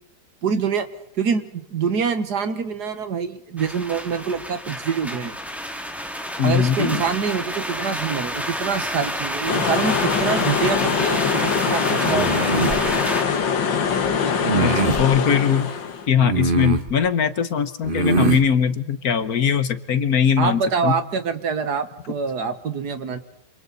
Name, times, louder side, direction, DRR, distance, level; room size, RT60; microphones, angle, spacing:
voice 1, 0.4-0.9 1.2-5.4 6.4-13.1 20.4-23.2, right 6 dB, 65° right, 10 dB, 1.9 m, -25 dB
sound 1, 3.6-13.2, equal, ahead, 2.3 m, -29 dB
voice 2, 6.4-7.0 14.6-15.7 16.1-21.0, left 7 dB, 60° left, 12 dB, 1.5 m, -21 dB
sound 2, 9.5-16.1, left 6 dB, 90° left, 2.2 m, -23 dB
sound 3, 12.1-12.8 14.4-15.1 16.2-16.9 17.8-18.4, right 3 dB, 30° right, 1.3 m, -22 dB
27.5 x 27.5 x 4.1 m, 0.77 s
omnidirectional pair, 1.9 m